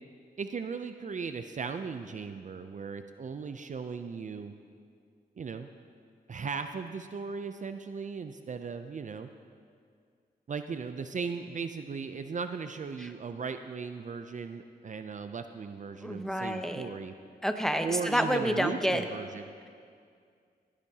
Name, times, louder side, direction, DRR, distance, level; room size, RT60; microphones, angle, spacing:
voice 1, 0.4-4.5 5.4-5.7 6.3-9.3 10.5-17.1 17.8-19.5, right 5 dB, 50° right, 8 dB, 0.5 m, -37 dB
voice 2, 16.0-16.9 17.4-19.0, equal, 5° left, 6 dB, 0.8 m, -29 dB
18.0 x 10.0 x 2.8 m, 2.2 s
cardioid pair, 70°, 17 cm